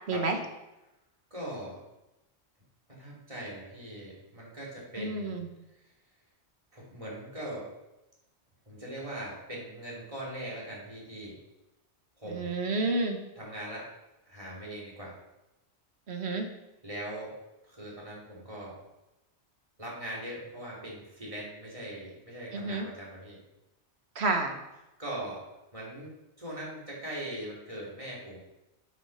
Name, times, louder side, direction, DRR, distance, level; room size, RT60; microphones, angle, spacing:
voice 1, 0.1-0.4 5.0-5.5 12.3-13.2 16.1-16.5 22.5-22.9 24.1-24.6, right 3 dB, 70° right, 4 dB, 1.4 m, -30 dB
voice 2, 1.3-1.8 2.9-5.4 6.7-7.7 8.7-11.4 12.2-12.5 13.3-13.9 14.2-15.2 16.8-17.4 17.6-18.8 19.8-23.4 25.0-25.4 25.7-26.1 26.4-28.4, right 1 dB, 30° right, -4 dB, 3.0 m, -40 dB
8.0 x 5.9 x 5.8 m, 0.96 s
omnidirectional pair, 1.1 m